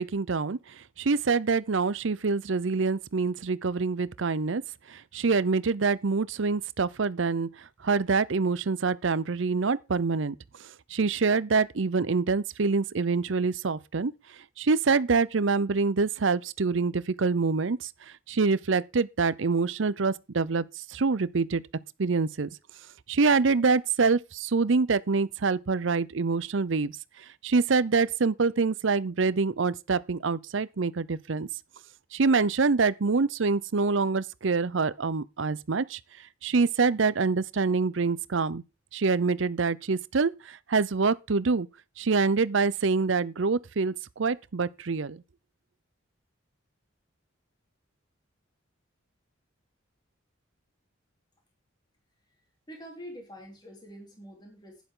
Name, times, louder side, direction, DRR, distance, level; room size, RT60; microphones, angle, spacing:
voice 1, 0.0-4.6 4.9-7.5 7.8-10.3 10.9-14.1 14.6-17.9 18.3-21.6 22.0-22.5 23.1-26.9 27.4-31.5 32.1-36.0 36.4-38.6 38.9-41.7 42.0-45.2, right 4 dB, 65° right, 0.6 m, -25 dB
voice 2, 52.7-54.8, equal, 20° left, 3.6 m, -45 dB
11.5 x 10.5 x 3.8 m
head